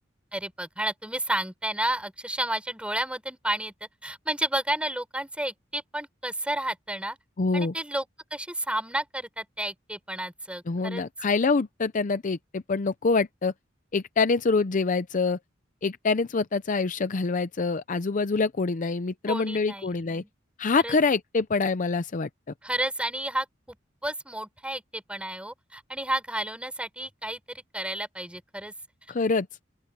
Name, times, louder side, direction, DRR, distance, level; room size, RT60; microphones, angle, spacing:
voice 1, 0.3-3.7 4.0-7.2 7.5-11.0 19.3-20.3 20.8-21.0 22.6-23.8 24.0-28.7, right 1 dB, 5° right, 4.6 m, -31 dB
voice 2, 7.4-7.7 10.7-13.5 13.9-15.4 15.8-20.2 20.6-22.3 29.1-29.5, left 4 dB, 45° left, 0.6 m, -25 dB
open air
head